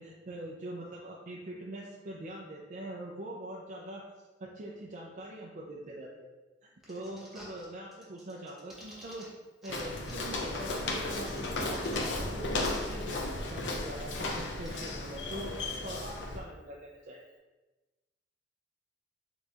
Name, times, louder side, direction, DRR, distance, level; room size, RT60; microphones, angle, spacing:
voice 1, 0.0-6.3 6.6-9.3 9.6-13.2 13.5-17.2, right 1 dB, 45° right, -3 dB, 0.4 m, -43 dB
sound 1, 6.8-7.6 7.9-9.3 9.6-9.7 10.0-12.2 12.5-12.6 12.8-14.7, equal, ahead, 0.8 m, -51 dB
Walk footsteps, 9.7-16.4, left 2 dB, 80° left, 0.6 m, -35 dB
4.2 x 3.9 x 2.4 m, 1.1 s
head